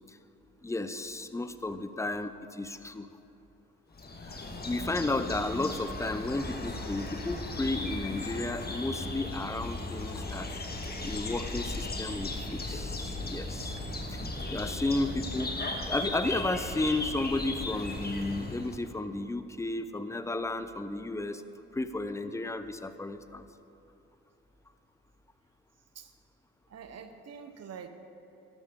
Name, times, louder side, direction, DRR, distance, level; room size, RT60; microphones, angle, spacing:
voice 1, 0.6-3.1 4.2-4.4 4.7-10.5 11.0-13.8 14.1-14.2 14.5-15.5 15.9-21.4 21.7-23.5, left 2 dB, 10° left, 11 dB, 0.6 m, -33 dB
sound 1, 3.9-18.8, left 2 dB, 30° left, 1.5 m, -36 dB
voice 2, 26.7-27.9, right 7 dB, 55° right, 8 dB, 0.9 m, -46 dB
13.0 x 11.0 x 3.7 m, 2.9 s
supercardioid pair, 60°, 30 cm